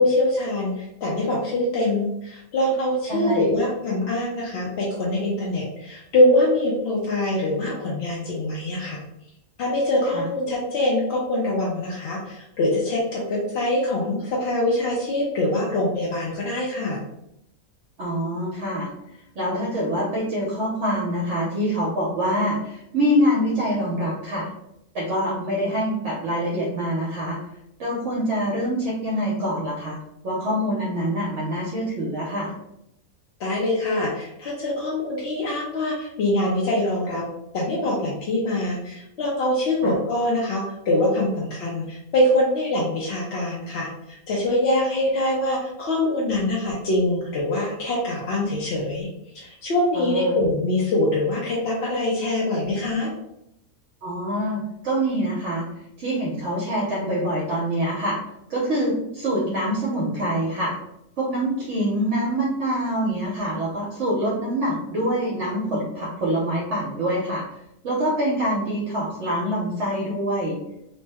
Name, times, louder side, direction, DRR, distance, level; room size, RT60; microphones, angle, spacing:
voice 1, 0.0-9.0 9.6-17.0 33.4-37.2 37.5-49.1 49.3-53.1, left 1 dB, 60° left, -5 dB, 0.8 m, -24 dB
voice 2, 3.1-3.4 10.1-10.2 18.0-18.9 19.3-24.5 24.9-27.4 27.8-30.0 30.2-32.5 39.8-39.9 49.9-50.4 54.0-55.7 56.0-58.2 58.5-60.7 61.2-67.4 67.8-70.6, equal, 60° right, -5 dB, 1.0 m, -25 dB
3.0 x 2.1 x 3.4 m, 0.80 s
omnidirectional pair, 1.5 m